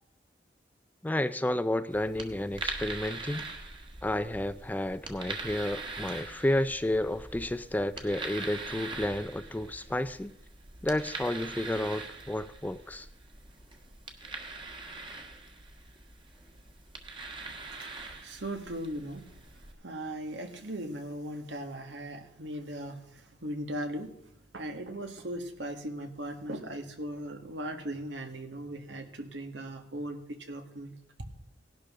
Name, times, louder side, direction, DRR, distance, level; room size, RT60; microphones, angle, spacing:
voice 1, 1.0-3.4 4.0-10.3 10.8-13.1, left 1 dB, 10° left, 13 dB, 0.4 m, -31 dB
sound 1, 1.9-19.7, right 3 dB, 30° right, 1.4 m, -42 dB
voice 2, 17.8-19.3 19.8-24.1 24.5-30.9, right 1 dB, 85° right, 5 dB, 1.6 m, -38 dB
17.5 x 11.5 x 3.7 m, 0.79 s
head